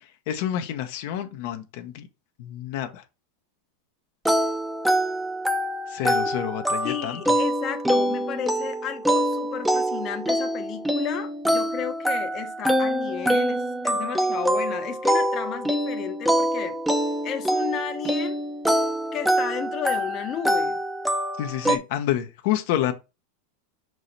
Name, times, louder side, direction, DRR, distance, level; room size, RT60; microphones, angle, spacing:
voice 1, 0.0-2.1 2.4-3.0 5.9-7.2 21.4-22.9, left 11 dB, 60° left, 1.0 m, -28 dB
sound 1, 4.2-21.8, right 1 dB, 5° right, 0.8 m, -25 dB
voice 2, 6.8-16.8 17.2-18.4 19.1-20.8, left 9 dB, 35° left, 0.9 m, -33 dB
5.6 x 4.8 x 4.1 m
supercardioid pair, 135°, 0 cm